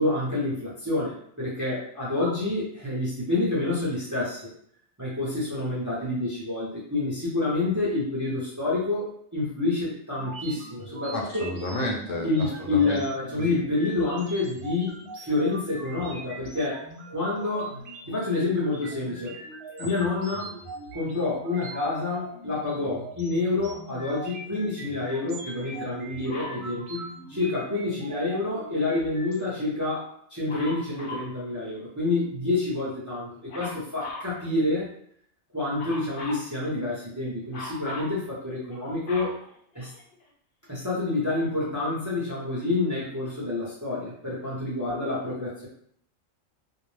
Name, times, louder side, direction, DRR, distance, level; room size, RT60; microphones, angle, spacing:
voice 1, 0.0-4.4 5.0-11.5 12.2-16.8 17.1-17.8 18.1-19.3 19.8-20.6 20.9-27.0 27.3-34.9 35.5-39.4 39.7-39.9 40.7-45.7, left 2 dB, 20° right, -7 dB, 0.5 m, -28 dB
sound 1, 10.2-29.4, right 2 dB, 60° right, 0.8 m, -42 dB
voice 2, 11.1-12.3 12.6-13.0 13.4-13.6 19.8-19.9, left 1 dB, 75° left, 0 dB, 1.0 m, -31 dB
Dog, 26.3-26.7 30.5-31.3 33.5-34.3 35.8-36.5 37.5-38.2 38.7-40.2 41.0-41.1, left 2 dB, 55° left, 0.6 m, -39 dB
2.5 x 2.0 x 3.1 m, 0.66 s
omnidirectional pair, 1.4 m